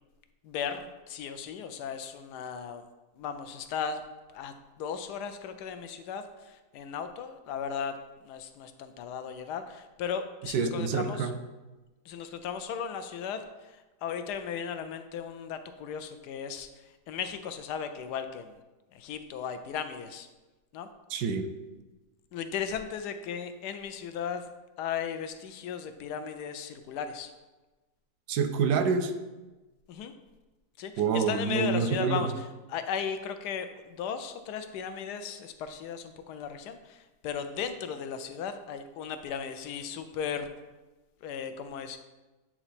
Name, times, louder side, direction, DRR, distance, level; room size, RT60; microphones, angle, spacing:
voice 1, 0.4-2.8 3.2-4.0 4.3-8.0 8.2-11.3 12.1-16.7 17.1-18.6 18.9-20.3 20.7-20.9 22.3-24.5 24.8-27.3 29.9-30.1 30.8-40.5 41.2-42.0, left 7 dB, 90° left, 9 dB, 1.2 m, -36 dB
voice 2, 10.4-11.4 21.1-21.5 28.3-29.1 31.0-32.2, right 5 dB, 85° right, 9 dB, 1.2 m, -27 dB
8.7 x 3.0 x 4.1 m, 1.1 s
omnidirectional pair, 1.7 m